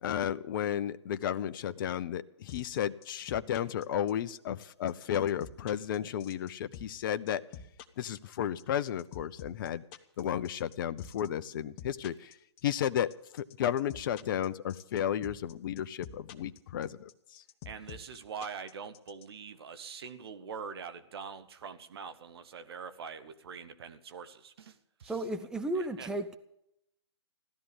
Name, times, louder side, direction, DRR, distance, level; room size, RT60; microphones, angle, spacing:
voice 1, 0.0-7.4 8.0-9.8 10.2-12.3 12.6-17.1, left 10 dB, 45° left, 0.8 m, -33 dB
sound 1, 2.5-19.2, left 8 dB, 30° left, 1.3 m, -47 dB
voice 2, 17.6-25.1 26.0-26.1, right 6 dB, 60° right, 1.5 m, -44 dB
voice 3, 25.0-26.4, right 2 dB, 5° right, 0.9 m, -34 dB
16.0 x 12.5 x 6.9 m
hypercardioid pair, 130°, 15 cm